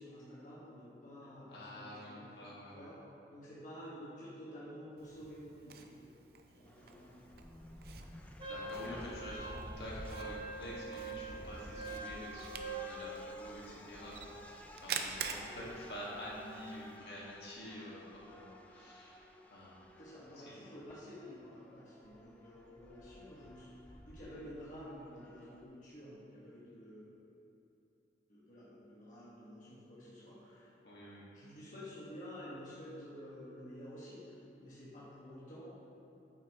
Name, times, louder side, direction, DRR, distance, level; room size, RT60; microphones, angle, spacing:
voice 1, 0.0-2.4 2.7-3.0 3.3-7.3 20.0-27.3 28.3-30.7 31.3-35.7, equal, 45° left, -9 dB, 1.5 m, -51 dB
voice 2, 1.5-2.1 2.4-2.9 8.4-20.0 20.4-20.6 30.8-31.3, left 1 dB, 65° left, -6 dB, 1.8 m, -48 dB
Camera, 5.0-17.0, right 6 dB, 60° right, 0.5 m, -48 dB
sound 1, 6.7-25.6, left 1 dB, 10° left, 0.4 m, -53 dB
Wind instrument woodwind instrument, 8.4-13.0, right 4 dB, 25° right, 0.8 m, -45 dB
8.7 x 7.3 x 3.0 m, 2.9 s
head